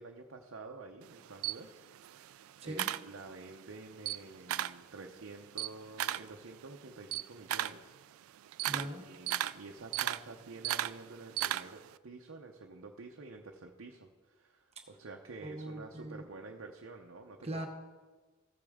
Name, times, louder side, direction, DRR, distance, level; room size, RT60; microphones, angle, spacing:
voice 1, 0.0-8.0 8.6-17.6, right 3 dB, 70° right, 1 dB, 0.7 m, -49 dB
Camera, 1.0-3.6 3.9-4.9 5.2-11.9, right 13 dB, 85° right, 0.3 m, -36 dB
voice 2, 8.7-9.0 15.4-16.3 17.4-17.7, right 1 dB, 30° right, 3 dB, 0.9 m, -40 dB
15.0 x 8.3 x 3.6 m, 1.4 s
head